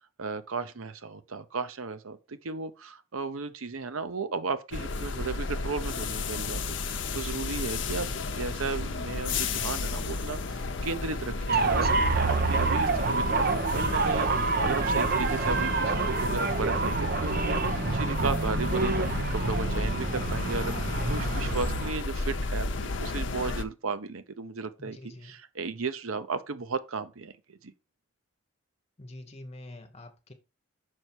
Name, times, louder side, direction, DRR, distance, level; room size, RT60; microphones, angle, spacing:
voice 1, 0.2-25.0 25.2-27.7, right 4 dB, 85° right, 0.8 m, -35 dB
sound 1, 4.7-23.6, left 3 dB, 60° left, 0.8 m, -32 dB
sound 2, 11.5-21.9, right 4 dB, 45° right, 0.8 m, -27 dB
voice 2, 24.8-25.3 29.0-30.3, left 1 dB, 30° left, 1.2 m, -45 dB
6.4 x 5.5 x 4.6 m
head